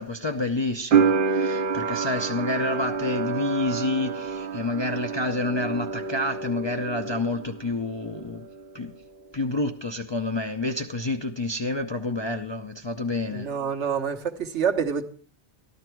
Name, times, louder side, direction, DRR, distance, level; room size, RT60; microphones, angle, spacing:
voice 1, 0.0-8.5 8.7-8.9 9.3-13.5, left 2 dB, 30° left, 0.5 m, -28 dB
sound 1, 0.9-7.7 8.0-8.9, right 5 dB, 55° right, 0.8 m, -27 dB
voice 2, 13.3-15.0, right 7 dB, 75° right, 1.4 m, -27 dB
13.0 x 11.5 x 4.6 m
omnidirectional pair, 1.2 m